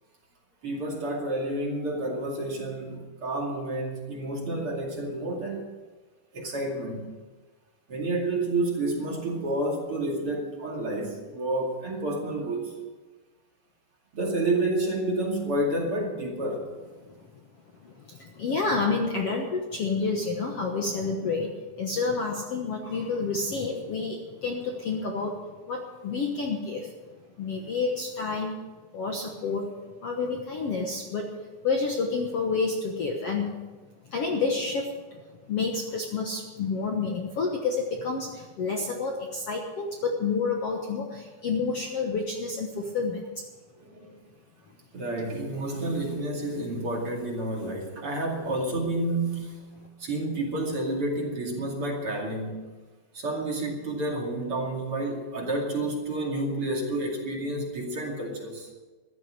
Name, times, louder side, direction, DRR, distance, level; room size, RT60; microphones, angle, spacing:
voice 1, 0.6-5.7 6.3-7.2 7.9-12.7 14.1-16.7 43.8-44.2 44.9-49.7 50.0-52.7 53.1-58.7, right 2 dB, 40° right, -1 dB, 3.0 m, -30 dB
voice 2, 17.8-25.4 25.7-26.9 27.4-28.6 28.9-29.7 30.0-31.3 31.6-33.5 34.1-35.2 35.5-43.4, left 4 dB, 55° left, 1 dB, 1.8 m, -29 dB
15.0 x 12.5 x 6.6 m, 1.3 s
omnidirectional pair, 4.2 m